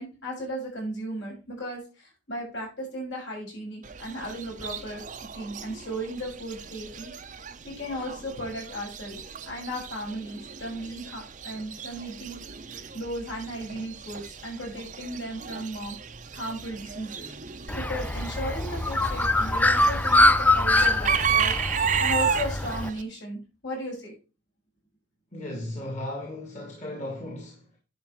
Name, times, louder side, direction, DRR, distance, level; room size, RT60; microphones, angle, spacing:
voice 1, 0.0-7.1 7.6-9.2 9.5-15.9 16.3-24.1, equal, 70° left, 6.6 m, -36 dB
Chicken rooster / Bird, 3.8-23.0, right 7 dB, 40° right, 0.7 m, -34 dB
Bird, 17.7-22.9, left 2 dB, 10° left, 0.3 m, -23 dB
voice 2, 25.3-27.8, left 1 dB, 40° left, 2.3 m, -36 dB
10.5 x 5.6 x 4.7 m
head